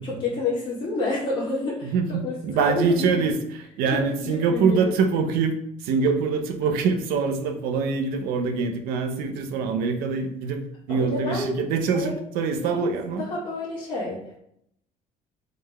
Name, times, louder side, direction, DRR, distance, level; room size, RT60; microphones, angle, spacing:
voice 1, 0.0-3.2 3.9-4.9 10.9-11.5 11.9-12.2 12.6-12.9 13.2-14.4, left 2 dB, 35° left, -7 dB, 1.2 m, -29 dB
voice 2, 1.8-3.4 3.8-10.6 10.9-13.2, right 5 dB, 85° right, 6 dB, 0.6 m, -24 dB
3.8 x 3.2 x 3.4 m, 0.73 s
cardioid pair, 165°, 15 cm